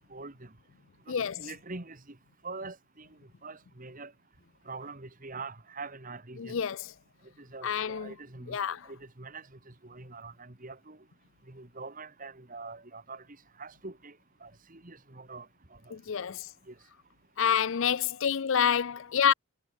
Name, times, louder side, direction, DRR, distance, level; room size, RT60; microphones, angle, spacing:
voice 1, 0.1-0.5 1.1-2.2 2.4-3.1 3.4-4.1 4.7-6.6 7.4-11.0 11.5-13.2 13.6-14.2 14.4-15.9 16.7-16.8, right 3 dB, 35° right, 2.0 m, -44 dB
voice 2, 1.1-1.5 6.4-6.9 7.6-8.1 8.5-8.9 15.9-16.5 17.4-19.3, left 8 dB, 60° left, 0.5 m, -28 dB
head